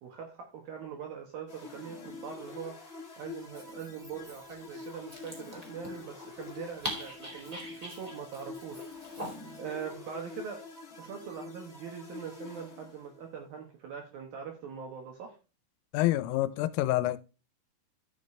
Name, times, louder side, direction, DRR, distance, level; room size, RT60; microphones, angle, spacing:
voice 1, 0.0-2.7 3.2-8.8 9.6-10.6 11.0-15.4, right 7 dB, 70° right, 2.3 m, -42 dB
sound 1, 1.5-13.3, left 4 dB, 20° left, 3.4 m, -46 dB
Dog, 3.4-9.6, equal, 25° right, 0.8 m, -44 dB
voice 2, 15.9-17.2, left 15 dB, 85° left, 3.3 m, -27 dB
12.5 x 6.6 x 3.2 m
omnidirectional pair, 5.8 m